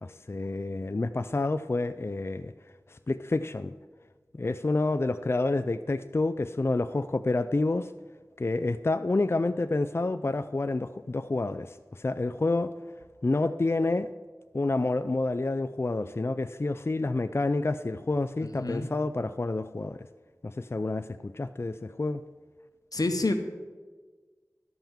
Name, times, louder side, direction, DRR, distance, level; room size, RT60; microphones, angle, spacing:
voice 1, 0.0-2.5 2.9-3.7 4.3-7.9 8.4-12.7 13.2-14.1 14.5-20.0 20.4-22.2, left 2 dB, 40° left, 10 dB, 0.3 m, -28 dB
voice 2, 18.6-18.9 22.9-23.3, left 2 dB, 85° left, 5 dB, 1.0 m, -27 dB
12.0 x 5.8 x 7.1 m, 1.4 s
wide cardioid pair, 50°, 6 cm